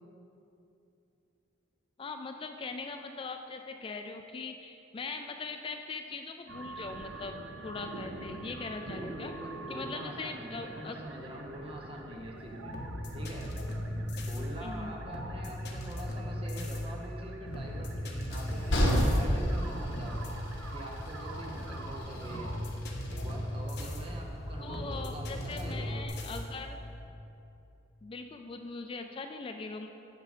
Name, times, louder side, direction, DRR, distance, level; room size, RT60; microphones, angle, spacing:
voice 1, 2.0-7.4 7.6-9.3 9.7-11.0 14.6-15.0 24.6-26.8 28.0-29.9, left 3 dB, 30° left, 6 dB, 0.3 m, -41 dB
sound 1, 6.5-22.6, right 2 dB, 90° right, 0.7 m, -46 dB
voice 2, 8.8-12.7 13.1-13.5 14.2-20.2 20.7-22.6 23.1-26.0, right 1 dB, 30° right, 0 dB, 1.1 m, -44 dB
sound 2, 12.4-27.1, left 1 dB, 60° left, 1.1 m, -39 dB
Train, 17.5-26.1, equal, 75° left, 1.7 m, -34 dB
9.3 x 6.8 x 4.9 m, 2.8 s
head